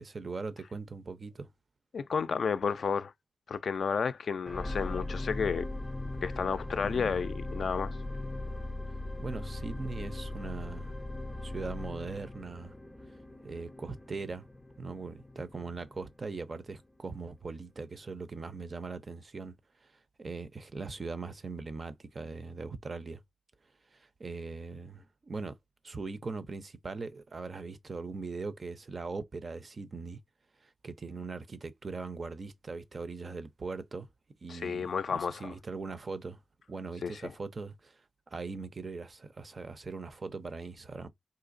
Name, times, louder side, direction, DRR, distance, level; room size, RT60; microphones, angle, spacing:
voice 1, 0.0-1.5 6.8-7.1 9.2-10.9 11.4-12.7 13.4-14.4 14.8-19.6 19.8-19.9 20.2-23.2 23.9-25.6 25.8-30.2 30.6-34.1 34.4-36.4 36.7-38.0 38.3-41.1, right 4 dB, 45° right, 0.4 m, -40 dB
voice 2, 1.9-3.1 3.5-5.7 6.2-8.0 34.5-35.5 37.0-37.3, left 6 dB, 70° left, 0.3 m, -32 dB
sound 1, 4.5-16.8 17.4-17.5, left 2 dB, 10° left, 0.5 m, -39 dB
3.8 x 2.8 x 2.5 m
wide cardioid pair, 115°, 0 cm